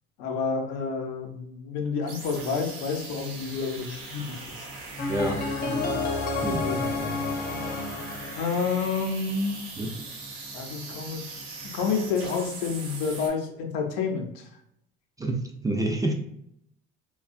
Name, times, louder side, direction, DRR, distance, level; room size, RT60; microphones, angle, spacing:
voice 1, 0.2-4.7 5.6-6.0 6.3-7.3 8.4-9.6 10.5-11.3 11.7-14.4, left 5 dB, 85° left, 3 dB, 0.6 m, -29 dB
sound 1, 2.0-13.3, right 3 dB, 85° right, 0.8 m, -40 dB
sound 2, 5.0-9.1, left 3 dB, 35° left, 0.6 m, -30 dB
voice 2, 5.1-5.4 6.4-6.7 9.8-9.9 15.2-16.1, right 1 dB, 15° right, 2 dB, 0.3 m, -27 dB
2.5 x 2.2 x 2.4 m, 0.76 s
supercardioid pair, 90°, 29 cm